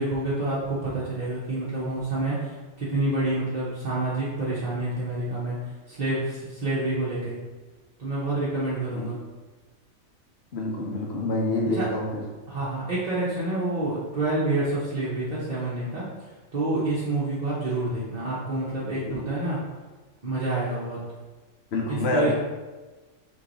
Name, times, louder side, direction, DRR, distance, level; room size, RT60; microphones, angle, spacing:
voice 1, 0.0-5.6 5.9-7.4 8.0-9.2 11.7-11.9 12.5-16.0 16.5-19.6 20.2-21.0 21.9-22.3, right 2 dB, 35° right, -9 dB, 0.9 m, -28 dB
voice 2, 10.5-12.2 19.0-19.3 21.7-22.3, left 2 dB, 55° left, -1 dB, 0.9 m, -27 dB
3.8 x 3.2 x 3.9 m, 1.3 s
omnidirectional pair, 1.4 m